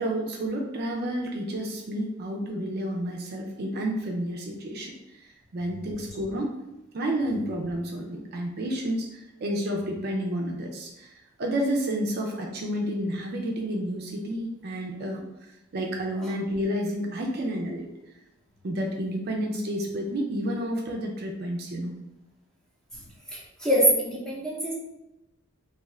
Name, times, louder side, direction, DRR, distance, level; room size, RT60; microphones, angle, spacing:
voice 1, 0.0-5.3 5.5-6.5 6.9-17.9 18.6-22.0, equal, 50° right, 1 dB, 0.4 m, -30 dB
voice 2, 23.3-24.7, equal, 5° left, -5 dB, 0.7 m, -24 dB
2.7 x 2.4 x 3.1 m, 0.93 s
head